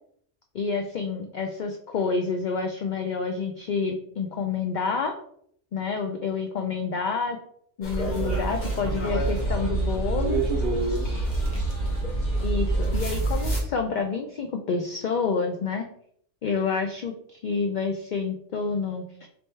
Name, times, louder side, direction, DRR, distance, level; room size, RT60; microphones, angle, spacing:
voice 1, 0.5-5.1 5.7-7.4 7.8-10.4 12.4-15.9 16.4-19.3, left 5 dB, 65° left, 3 dB, 0.4 m, -28 dB
sound 1, 7.8-13.6, right 2 dB, 40° left, 1.2 m, -27 dB
voice 2, 8.2-8.9 10.1-11.5, right 4 dB, 60° right, 1 dB, 0.8 m, -31 dB
4.3 x 3.3 x 3.2 m, 0.66 s
omnidirectional pair, 1.3 m